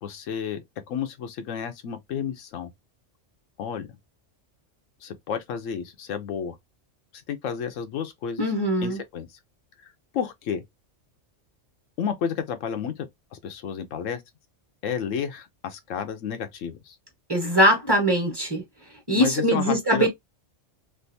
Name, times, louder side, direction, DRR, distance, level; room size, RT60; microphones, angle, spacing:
voice 1, 0.0-2.7 3.6-3.9 5.0-6.6 7.3-8.5 8.8-9.3 10.1-10.6 12.0-14.2 14.8-16.9 19.1-20.1, left 7 dB, 90° left, 1.0 m, -31 dB
voice 2, 8.4-9.0 17.3-18.6 19.1-20.1, equal, 20° right, 1.1 m, -21 dB
3.4 x 2.6 x 2.6 m
omnidirectional pair, 1.3 m